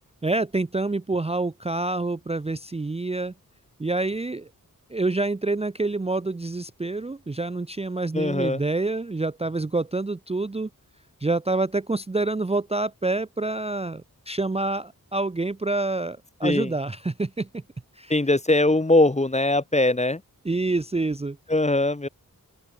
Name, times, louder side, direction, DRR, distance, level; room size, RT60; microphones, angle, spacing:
voice 1, 0.2-3.3 3.8-4.5 4.9-10.7 11.2-17.6 18.0-18.1 20.4-21.4, right 2 dB, 15° right, 0.5 m, -27 dB
voice 2, 8.1-8.6 16.4-16.7 18.1-20.2 21.5-22.1, left 2 dB, 20° left, 0.9 m, -21 dB
open air
wide cardioid pair, 45°, 36 cm